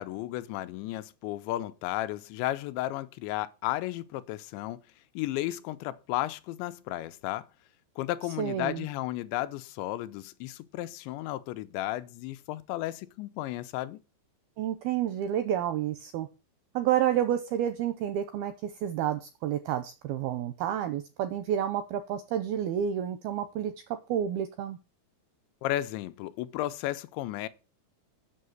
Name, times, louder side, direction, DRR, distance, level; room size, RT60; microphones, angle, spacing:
voice 1, 0.0-4.8 5.2-7.5 8.0-14.0 25.6-27.5, left 15 dB, 80° left, 2.9 m, -34 dB
voice 2, 8.4-8.9 14.6-16.3 16.7-23.7 24.1-24.8, right 10 dB, 85° right, 2.2 m, -30 dB
8.5 x 6.5 x 7.8 m
omnidirectional pair, 5.2 m